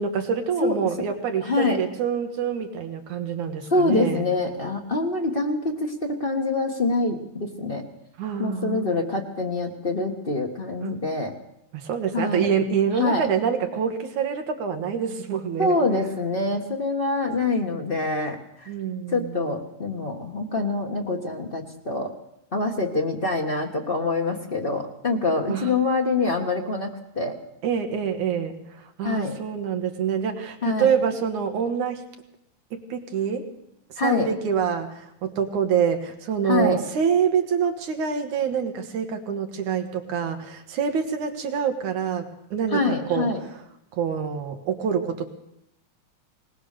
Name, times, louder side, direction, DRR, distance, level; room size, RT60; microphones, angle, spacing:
voice 1, 0.0-4.2 8.2-8.9 10.8-11.0 11.7-15.8 18.7-19.5 25.5-25.7 27.6-32.0 32.7-33.5 33.9-43.3 43.9-45.3, right 7 dB, 65° right, 5 dB, 2.8 m, -26 dB
voice 2, 1.4-1.8 3.7-7.8 8.4-11.3 12.1-12.5 13.0-13.3 15.6-18.7 19.1-22.1 22.5-27.4 29.0-29.4 30.6-30.9 34.0-34.3 36.4-36.8 42.7-43.4, left 3 dB, 80° left, 1 dB, 0.5 m, -25 dB
20.5 x 20.0 x 6.8 m, 0.80 s
omnidirectional pair, 4.0 m